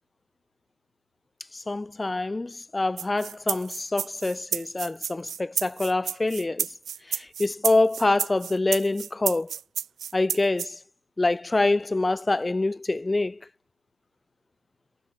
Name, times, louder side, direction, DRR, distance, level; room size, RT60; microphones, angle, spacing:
voice 1, 1.4-9.5 10.1-10.8 11.2-13.5, left 2 dB, 10° left, 2.0 m, -26 dB
sound 1, 3.0-10.7, right 8 dB, 30° right, 6.1 m, -31 dB
figure-of-eight pair, 90°, 0 cm